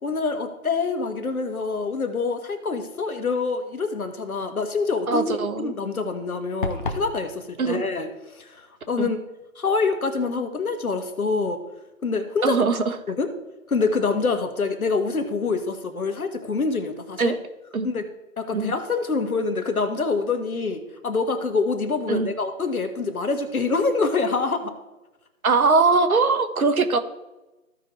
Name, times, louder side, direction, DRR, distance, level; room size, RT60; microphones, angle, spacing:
voice 1, 0.0-9.2 9.5-11.6 12.0-12.6 13.1-13.3 13.7-17.3 17.8-18.0 18.4-24.7, left 4 dB, 75° left, 7 dB, 1.6 m, -26 dB
voice 2, 5.1-5.7 7.6-7.8 9.0-9.1 12.4-12.9 17.2-17.4 17.7-17.9 18.5-18.7 22.1-22.3 25.4-27.0, right 4 dB, 75° right, 9 dB, 1.1 m, -21 dB
sound 1, 6.6-7.1, left 2 dB, 35° left, 0.8 m, -28 dB
15.0 x 5.2 x 3.1 m, 1.1 s
figure-of-eight pair, 160°, 43 cm